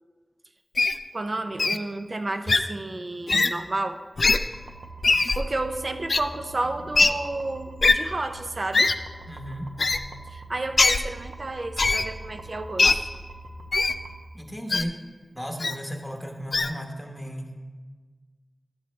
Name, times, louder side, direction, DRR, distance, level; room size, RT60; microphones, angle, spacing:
Wild animals, 0.8-1.0 1.6-1.8 2.5-2.6 3.3-3.5 4.2-4.4 5.0-5.4 6.1-6.2 6.9-7.1 7.8-7.9 8.7-8.9 9.8-10.0 10.8-11.0 11.8-12.0 12.8-12.9 13.7-13.9 14.7-14.8 15.6-15.7 16.5-16.7, left 3 dB, 60° left, 0.4 m, -20 dB
voice 1, 1.1-4.0 5.4-8.9 10.3-13.0, right 2 dB, 50° right, 7 dB, 0.6 m, -31 dB
sound 1, 4.5-14.2, right 2 dB, 80° right, 0.8 m, -43 dB
voice 2, 9.3-9.7 14.3-15.0 15.3-17.5, equal, 5° left, 2 dB, 1.1 m, -35 dB
11.5 x 7.2 x 3.2 m, 1.4 s
wide cardioid pair, 70°, 0 cm